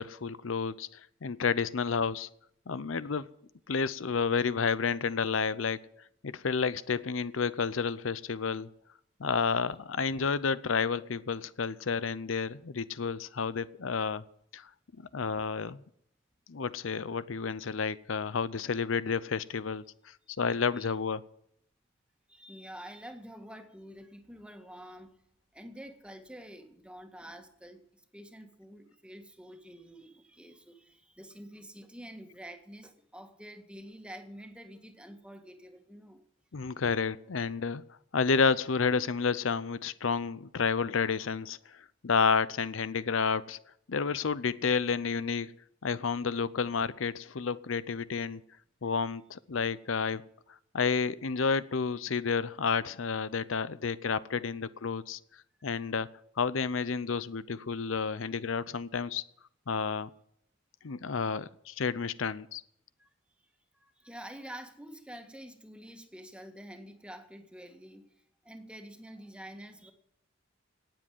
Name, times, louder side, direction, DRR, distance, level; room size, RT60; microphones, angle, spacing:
voice 1, 0.0-2.3 2.7-3.3 3.7-5.8 6.2-8.7 9.2-14.2 14.5-14.7 15.0-15.8 16.5-21.2 36.5-37.8 38.1-43.6 43.9-45.5 45.8-48.4 48.8-50.2 50.7-55.2 55.6-59.2 59.7-60.1 60.8-62.6, left 5 dB, 80° left, 17 dB, 0.6 m, -30 dB
voice 2, 20.4-20.9 22.3-25.2 25.5-36.2 55.6-55.7 60.9-61.0 63.0-63.1 63.7-69.9, equal, 5° right, 6 dB, 1.8 m, -48 dB
18.5 x 7.6 x 9.2 m, 0.71 s
head